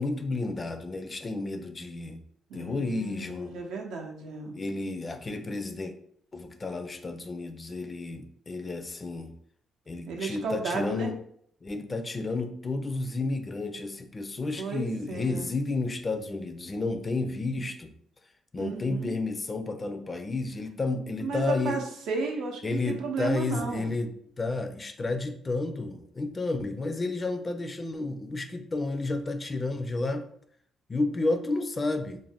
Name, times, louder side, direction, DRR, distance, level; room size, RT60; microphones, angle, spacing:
voice 1, 0.0-2.2 2.5-3.6 4.5-5.9 6.3-9.3 9.9-11.1 11.6-17.9 18.5-21.8 22.6-24.1 24.4-30.3 30.9-32.2, left 3 dB, 30° left, 8 dB, 0.4 m, -31 dB
voice 2, 2.5-4.5 10.1-11.1 14.6-15.5 18.6-19.1 21.2-23.9, right 4 dB, 85° right, 2 dB, 0.5 m, -33 dB
2.5 x 2.1 x 3.3 m, 0.64 s
cardioid pair, 90°, 0 cm